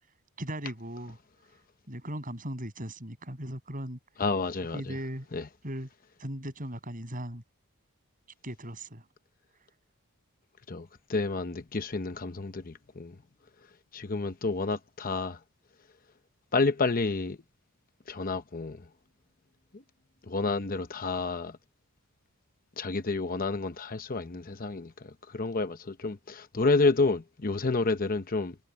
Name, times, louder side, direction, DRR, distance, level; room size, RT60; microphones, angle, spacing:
voice 1, 0.4-1.2 1.9-4.0 4.7-5.3 5.6-5.9 6.2-7.4 8.4-9.0, right 1 dB, 40° right, 7.8 m, -37 dB
voice 2, 4.2-4.9 5.3-5.5 10.7-13.2 13.9-15.4 16.5-17.4 18.1-18.9 19.7-19.8 20.2-21.6 22.8-28.6, left 3 dB, 40° left, 0.8 m, -30 dB
head